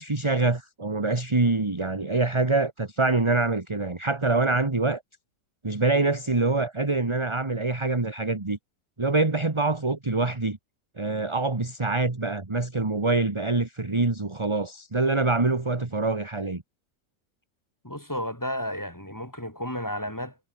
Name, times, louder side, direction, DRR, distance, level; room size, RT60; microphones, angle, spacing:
voice 1, 0.0-5.0 5.6-8.6 9.0-10.6 11.0-16.6, right 3 dB, 15° right, 1.5 m, -25 dB
voice 2, 17.8-20.4, equal, 10° left, 4.2 m, -32 dB
omnidirectional pair, 1.9 m